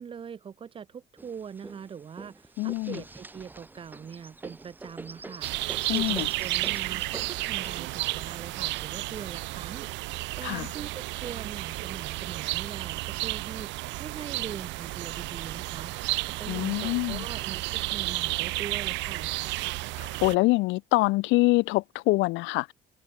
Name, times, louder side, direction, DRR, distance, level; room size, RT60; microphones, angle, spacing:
voice 1, 0.0-5.5 5.9-15.9 16.4-19.3, right 7 dB, 25° right, 7.7 m, -42 dB
sound 1, 1.2-11.4 12.1-13.0 13.4-13.5 13.8-14.5 15.3-15.4 16.0-16.4, right 3 dB, 10° right, 2.4 m, -47 dB
voice 2, 2.6-3.0 5.9-6.3 10.4-10.7 16.5-17.2 20.0-22.7, left 22 dB, 75° left, 0.6 m, -25 dB
sound 2, 5.4-20.3, right 20 dB, 70° right, 0.8 m, -32 dB
cardioid pair, 175°, 19 cm